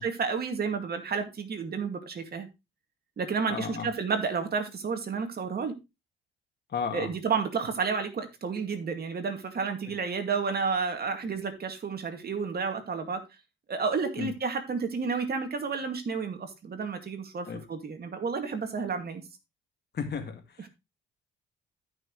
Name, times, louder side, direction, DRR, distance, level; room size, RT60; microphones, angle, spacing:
voice 1, 0.0-2.5 3.2-5.8 6.9-13.2 13.7-19.2, right 5 dB, 50° right, 2.3 m, -31 dB
voice 2, 3.5-3.9 6.7-7.1 14.2-14.3 17.5-17.6 19.9-20.7, left 6 dB, 55° left, 2.1 m, -34 dB
13.5 x 6.1 x 3.1 m
cardioid pair, 75°, 21 cm